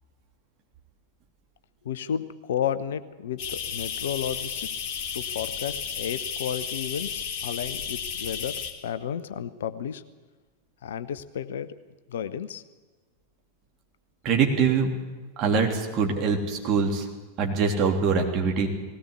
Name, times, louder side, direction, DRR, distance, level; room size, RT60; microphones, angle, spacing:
voice 1, 1.8-4.7 5.1-10.0 10.8-11.7 12.1-12.6, left 9 dB, 60° left, 14 dB, 0.8 m, -32 dB
sound 1, 3.4-8.7, left 7 dB, 40° left, 2.8 m, -33 dB
voice 2, 14.2-14.9 15.4-17.1 17.4-18.7, right 5 dB, 35° right, 1 dB, 3.3 m, -23 dB
19.0 x 17.5 x 8.3 m, 1.3 s
figure-of-eight pair, 90°, 0 cm